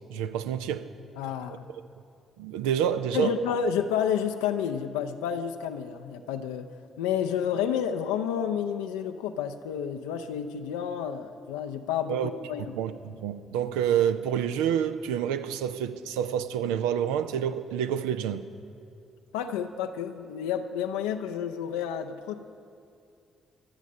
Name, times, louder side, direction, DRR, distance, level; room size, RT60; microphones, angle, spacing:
voice 1, 0.1-0.9 2.4-3.3 12.1-12.3 12.7-18.4, right 9 dB, 70° right, 11 dB, 0.5 m, -28 dB
voice 2, 1.2-1.7 3.1-6.7 7.0-12.8 19.3-22.3, left 8 dB, 70° left, 6 dB, 0.5 m, -30 dB
24.0 x 8.3 x 5.4 m, 2.4 s
figure-of-eight pair, 40°, 0 cm